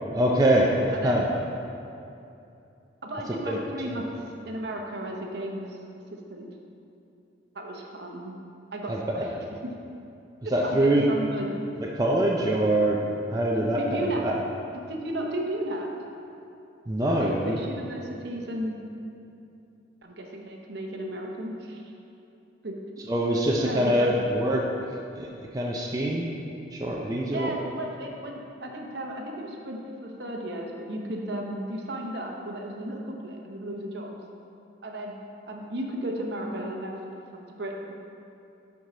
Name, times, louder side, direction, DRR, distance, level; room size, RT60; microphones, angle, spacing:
voice 1, 0.1-1.3 3.5-3.6 3.9-4.0 8.9-9.3 10.5-11.1 11.8-13.0 13.3-14.4 16.9-17.6 23.1-24.6 25.2-26.3 26.7-27.5, right 1 dB, 20° right, -2 dB, 0.4 m, -24 dB
voice 2, 3.0-4.1 4.4-5.8 6.3-6.5 7.5-8.4 8.7-9.3 10.6-11.5 13.8-14.2 14.9-15.9 17.2-18.7 20.0-21.9 22.6-22.7 23.6-24.3 27.3-34.1 34.8-35.1 35.5-37.9, right 1 dB, 55° right, 0 dB, 0.9 m, -34 dB
9.7 x 4.7 x 3.9 m, 2.7 s
head